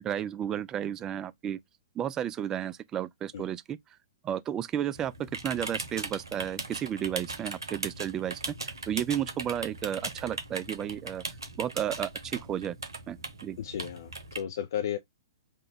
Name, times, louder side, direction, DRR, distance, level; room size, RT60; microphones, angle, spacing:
voice 1, 0.0-1.6 2.0-3.8 4.2-11.2 11.6-12.8 13.1-13.6, right 10 dB, 20° right, 0.3 m, -33 dB
sound 1, 4.9-14.4, right 3 dB, 90° right, 0.9 m, -39 dB
voice 2, 13.6-15.0, left 10 dB, 60° left, 0.4 m, -34 dB
3.7 x 2.2 x 3.8 m
hypercardioid pair, 120°, 2 cm